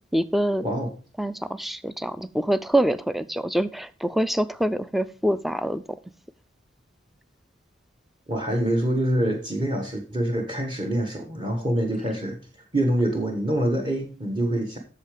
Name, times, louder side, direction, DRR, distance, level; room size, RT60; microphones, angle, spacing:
voice 1, 0.1-0.6 1.2-5.8, right 1 dB, ahead, 14 dB, 0.4 m, -25 dB
voice 2, 8.3-12.4 12.7-14.8, right 1 dB, 25° right, 2 dB, 1.3 m, -25 dB
8.5 x 6.8 x 4.8 m, 0.37 s
head